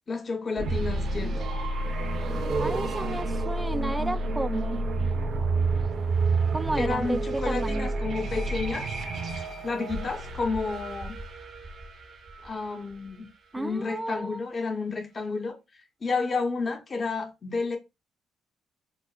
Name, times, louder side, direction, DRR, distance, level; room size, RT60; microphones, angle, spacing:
voice 1, 0.1-1.3 6.8-8.9 9.6-11.1 12.4-13.3 13.5-15.6 16.0-17.8, left 4 dB, 35° left, 0.8 m, -31 dB
sound 1, 0.6-13.3, right 3 dB, 65° right, 0.8 m, -30 dB
sound 2, 1.8-5.3, right 4 dB, 30° right, 0.7 m, -36 dB
voice 2, 2.6-4.8 6.5-7.9 13.5-14.4, right 2 dB, 15° right, 0.3 m, -32 dB
5.9 x 2.0 x 2.4 m
cardioid pair, 90°, 0 cm